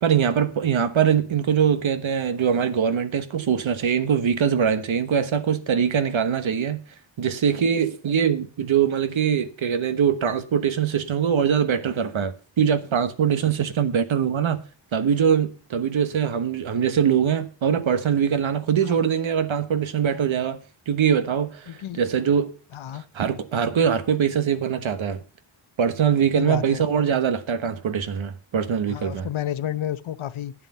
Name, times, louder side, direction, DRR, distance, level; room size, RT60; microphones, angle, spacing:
voice 1, 0.0-6.8 7.2-14.6 14.9-20.6 20.9-22.5 22.9-25.2 25.8-29.3, right 7 dB, 80° right, 1.2 m, -22 dB
voice 2, 21.7-22.0 22.7-23.0 26.3-26.8 28.9-30.5, left 11 dB, 90° left, 0.8 m, -30 dB
11.5 x 8.2 x 5.5 m
wide cardioid pair, 135°, 47 cm